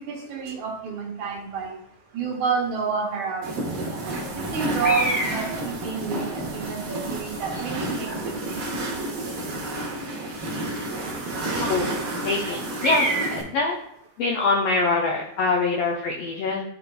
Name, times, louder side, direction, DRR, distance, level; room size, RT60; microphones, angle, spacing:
voice 1, 0.0-1.8 2.1-3.7 4.5-8.6, right 6 dB, 80° right, 0 dB, 2.5 m, -29 dB
sound 1, 3.2-3.3 3.6-3.7 3.8-4.5 4.8-5.5 6.2-6.4 6.9-7.1 7.5-7.6 8.1-8.3 9.3-9.4 12.8-13.4, equal, 20° left, 0.7 m, -28 dB
sound 2, 3.4-13.4, right 1 dB, 55° right, 1.8 m, -30 dB
voice 2, 11.6-11.9 12.2-13.8 14.2-16.6, left 3 dB, 80° left, 0 dB, 1.4 m, -24 dB
11.0 x 4.0 x 2.2 m, 0.76 s
omnidirectional pair, 3.4 m